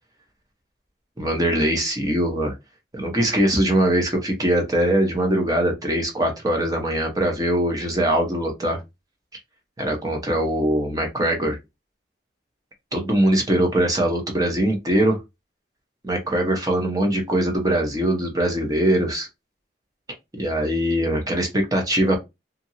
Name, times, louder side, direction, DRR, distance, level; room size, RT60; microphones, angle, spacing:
voice 1, 1.2-2.5 2.9-8.8 9.8-11.6 12.9-15.2 16.0-19.3 20.4-22.2, right 1 dB, 20° right, 0.8 m, -22 dB
2.7 x 2.6 x 2.6 m
head